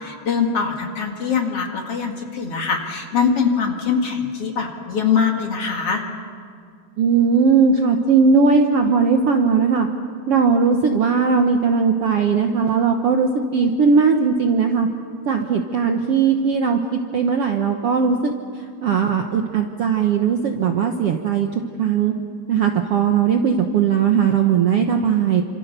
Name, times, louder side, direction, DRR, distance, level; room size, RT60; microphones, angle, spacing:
voice 1, 0.0-6.0, left 6 dB, 45° left, 2 dB, 2.7 m, -22 dB
voice 2, 7.0-9.9 10.3-14.9 15.2-21.5 21.8-22.1 22.5-25.4, right 5 dB, 65° right, 4 dB, 1.6 m, -18 dB
28.5 x 26.5 x 6.8 m, 2.2 s
omnidirectional pair, 3.9 m